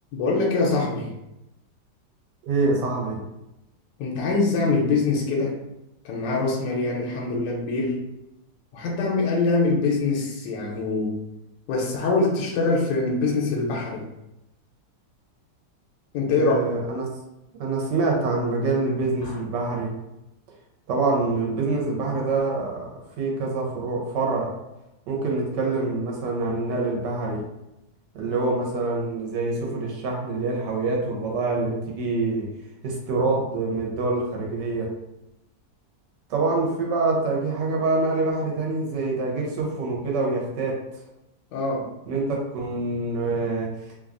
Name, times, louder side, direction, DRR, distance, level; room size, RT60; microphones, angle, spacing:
voice 1, 0.1-1.1 4.0-5.5 6.0-8.0 8.7-11.2 11.7-14.0 16.1-16.6 19.2-19.4 41.5-41.9, left 3 dB, 85° left, -1 dB, 1.2 m, -24 dB
voice 2, 2.4-3.2 16.3-17.1 17.6-19.9 20.9-22.9 23.2-24.5 25.1-27.4 28.1-32.5 32.8-34.9 36.3-41.0 42.1-42.2 42.5-43.9, right 3 dB, 80° right, -2 dB, 1.3 m, -25 dB
3.1 x 2.2 x 2.4 m, 0.90 s
omnidirectional pair, 1.9 m